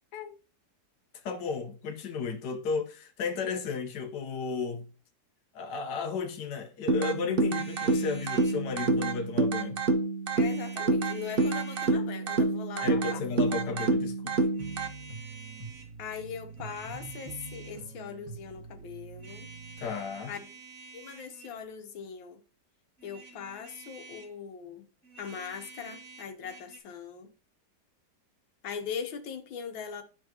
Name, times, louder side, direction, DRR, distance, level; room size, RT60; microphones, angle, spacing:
voice 1, 1.3-4.9 5.6-9.8 12.8-14.4 19.8-20.3, left 5 dB, 65° left, 1.6 m, -34 dB
sound 1, 6.9-14.9, right 3 dB, 90° right, 0.5 m, -28 dB
sound 2, 7.5-8.6 10.3-11.9 13.5-13.9 14.5-15.9 16.5-17.9 19.2-21.6 23.0-24.4 25.0-26.8, right 3 dB, 5° left, 2.2 m, -50 dB
voice 2, 10.4-13.3 16.0-19.5 20.3-20.5 20.9-22.4 23.0-24.9 25.2-27.3 28.6-30.0, left 7 dB, 90° left, 1.8 m, -40 dB
sound 3, 14.6-19.9, right 4 dB, 65° right, 2.7 m, -45 dB
11.0 x 4.8 x 2.9 m
omnidirectional pair, 2.1 m